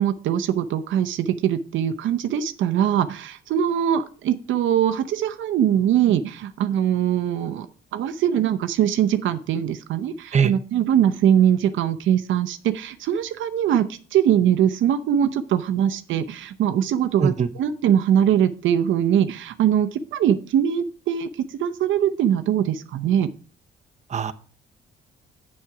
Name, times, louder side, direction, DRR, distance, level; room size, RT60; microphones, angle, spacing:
voice 1, 0.0-7.7 7.9-23.3, right 10 dB, 75° right, 9 dB, 0.7 m, -22 dB
voice 2, 10.3-10.5 17.2-17.5 24.1-24.3, right 6 dB, 35° right, 8 dB, 0.8 m, -21 dB
7.4 x 7.2 x 4.8 m, 0.42 s
cardioid pair, 90°, 20 cm